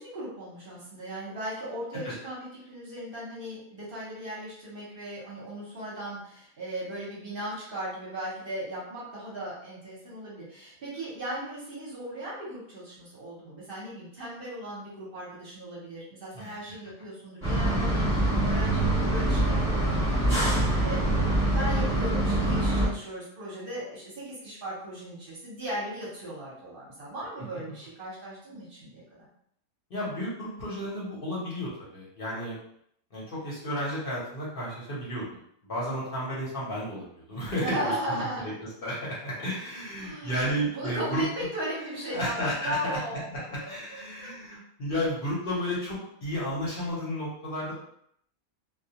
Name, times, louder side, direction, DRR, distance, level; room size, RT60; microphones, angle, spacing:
voice 1, 0.0-29.3 37.6-38.5 40.0-44.3, right 1 dB, 50° right, -6 dB, 0.8 m, -37 dB
sound 1, 17.4-22.9, right 1 dB, 10° right, 1.0 m, -24 dB
voice 2, 29.9-32.6 33.1-38.2 38.8-41.2 42.1-43.0 43.5-47.7, equal, 50° left, -7 dB, 0.8 m, -32 dB
2.2 x 2.2 x 2.7 m, 0.70 s
omnidirectional pair, 1.5 m